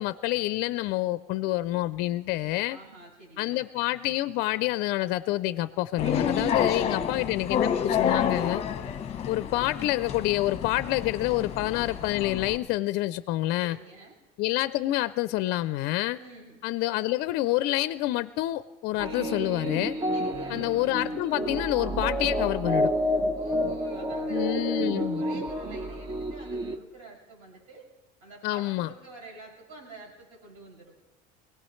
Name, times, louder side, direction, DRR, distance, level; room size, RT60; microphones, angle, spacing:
voice 1, 0.0-2.8 3.4-8.6 9.3-13.8 14.4-16.2 16.6-20.0 20.5-22.9 24.3-25.2 28.4-28.9, left 17 dB, 60° left, 14 dB, 0.5 m, -27 dB
voice 2, 2.7-3.7 6.5-7.1 13.5-14.1 16.2-16.6 20.1-20.6 23.3-27.9 28.2-31.0, right 2 dB, 80° right, -4 dB, 6.6 m, -47 dB
sound 1, 6.0-12.6, left 7 dB, 35° left, 1.0 m, -29 dB
sound 2, 19.0-26.8, equal, 25° right, 1.0 m, -29 dB
23.0 x 18.0 x 3.2 m, 1.1 s
cardioid pair, 135°, 19 cm